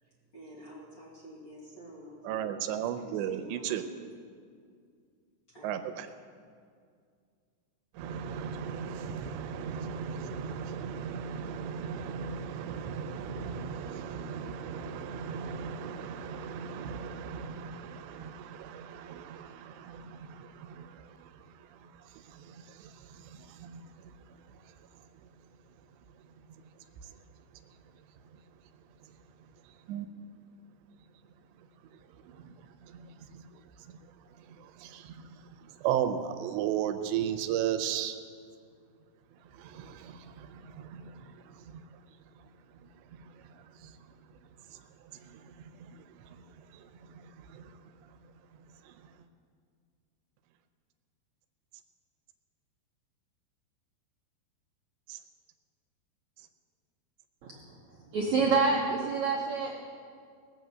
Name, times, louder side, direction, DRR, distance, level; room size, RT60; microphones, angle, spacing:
voice 1, 0.0-3.8 5.5-6.2, equal, 35° left, -6 dB, 2.2 m, -49 dB
voice 2, 2.3-3.8 5.6-6.1 8.0-20.9 23.6-23.8 29.9-30.1 34.8-35.1 35.8-38.2 39.6-40.5 40.7-41.1 47.5-47.6 55.1-55.2, right 8 dB, 90° right, 8 dB, 3.0 m, -35 dB
voice 3, 57.4-59.8, right 4 dB, 65° right, -2 dB, 1.8 m, -28 dB
19.5 x 6.7 x 7.8 m, 2.2 s
omnidirectional pair, 5.0 m